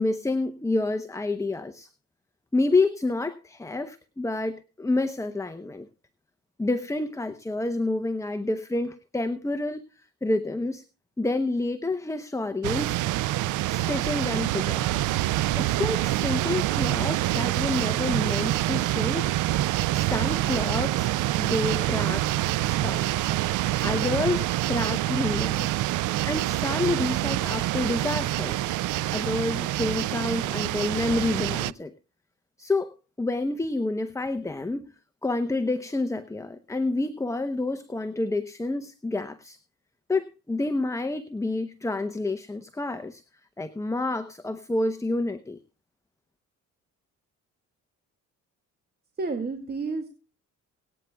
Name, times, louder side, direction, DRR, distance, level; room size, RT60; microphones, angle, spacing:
voice 1, 0.0-1.9 2.5-5.9 6.6-9.8 10.2-10.8 11.2-13.0 13.7-15.0 15.6-19.3 19.9-21.1 21.4-22.3 22.6-23.3 23.8-25.8 26.2-28.7 29.1-31.9 32.6-34.9 35.2-39.6 40.1-43.2 43.6-45.6, left 2 dB, 10° left, 9 dB, 0.8 m, -28 dB
sound 1, 12.6-31.7, right 16 dB, 80° right, 0.5 m, -26 dB
voice 2, 49.2-50.1, right 4 dB, 30° right, 4 dB, 2.2 m, -30 dB
24.0 x 9.1 x 2.3 m, 0.34 s
cardioid pair, 90°, 30 cm